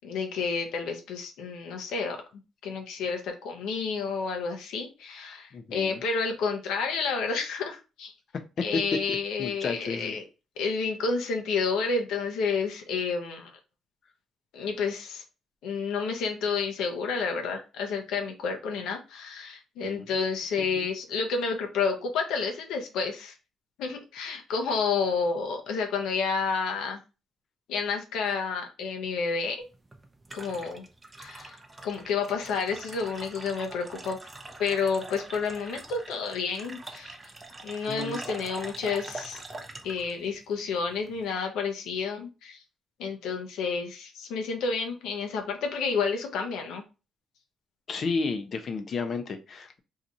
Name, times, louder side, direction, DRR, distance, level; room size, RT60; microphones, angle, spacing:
voice 1, 0.0-2.2 2.6-8.1 8.6-10.2 10.6-13.5 14.5-15.2 15.6-23.3 23.8-27.0 27.7-29.6 30.3-30.9 31.2-31.5 31.8-34.2 34.6-37.2 37.6-39.4 39.8-42.6 43.0-46.8, left 5 dB, 90° left, 0.7 m, -30 dB
voice 2, 5.5-6.0 8.6-8.8 9.4-10.2 19.8-20.0 20.6-20.9 37.9-38.2 47.9-49.8, left 4 dB, 50° left, 0.6 m, -32 dB
sound 1, 29.6-41.3, right 2 dB, 20° right, 0.5 m, -44 dB
2.8 x 2.4 x 4.0 m
cardioid pair, 90°, 0 cm